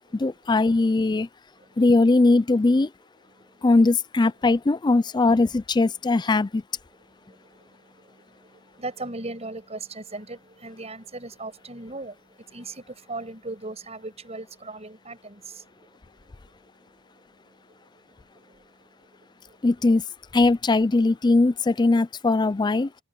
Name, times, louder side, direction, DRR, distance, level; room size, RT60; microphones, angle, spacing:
voice 1, 0.1-1.3 1.8-2.9 3.6-6.6 19.6-20.0 20.3-22.9, left 3 dB, 25° left, 0.4 m, -20 dB
voice 2, 3.3-3.7 6.9-19.7, right 2 dB, 35° right, 6.4 m, -40 dB
head